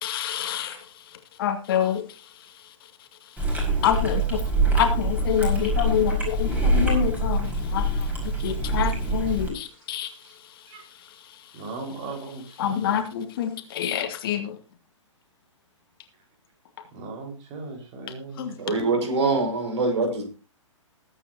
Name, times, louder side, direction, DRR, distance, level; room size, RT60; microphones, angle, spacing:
voice 1, 0.0-0.9 1.4-2.0 3.8-4.4 4.7-10.1 12.6-14.6 18.4-18.5, left 9 dB, 45° left, 5 dB, 2.4 m, -27 dB
Chewing mastication, 3.4-9.5, right 2 dB, 10° right, 5.1 m, -24 dB
voice 2, 5.1-5.6 7.4-7.6 9.3-9.4 10.2-10.4 10.7-10.8 11.5-13.0 16.9-18.6, right 3 dB, 30° right, 2 dB, 5.1 m, -39 dB
voice 3, 18.6-20.2, right 3 dB, 55° right, 4 dB, 5.6 m, -24 dB
20.5 x 9.1 x 2.8 m, 0.33 s
figure-of-eight pair, 120°, 17 cm